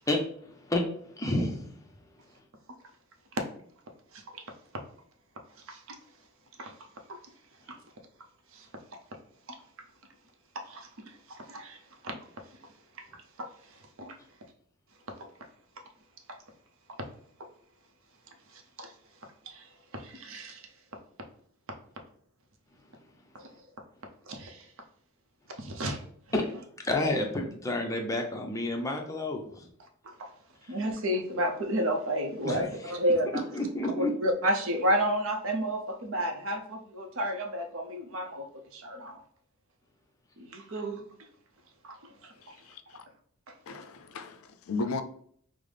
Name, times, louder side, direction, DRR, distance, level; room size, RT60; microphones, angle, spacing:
voice 1, 0.1-0.8 1.1-1.9 26.3-26.4 26.8-29.7 30.6-30.8 32.4-32.7 33.5-34.1, left 1 dB, 15° left, 0.5 m, -30 dB
voice 2, 4.1-4.4 5.7-6.0 6.6-6.8 7.1-7.2 7.7-7.8 8.5-8.7 10.5-12.2 13.0-13.1 13.4-14.2 18.5-18.9 19.5-19.7 19.9-20.7 23.3-23.5 24.3-24.7 25.6-26.0 30.2-30.3 30.7-33.4 34.0-38.5 38.7-39.2 40.4-41.0 41.8-42.0 42.2-42.6, equal, 60° right, 0.6 m, -32 dB
voice 3, 42.4-43.0 43.7-45.0, left 3 dB, 70° left, 0.4 m, -36 dB
5.4 x 2.0 x 3.3 m
head